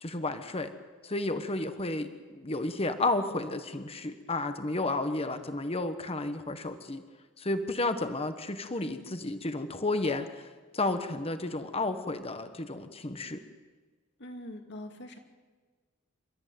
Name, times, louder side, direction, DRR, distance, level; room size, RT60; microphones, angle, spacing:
voice 1, 0.0-0.7 1.0-7.0 7.4-10.4 10.7-13.4, left 2 dB, 30° left, 9 dB, 1.3 m, -32 dB
voice 2, 14.2-15.2, left 1 dB, 55° left, 4 dB, 2.6 m, -43 dB
29.5 x 13.5 x 9.3 m, 1.4 s
head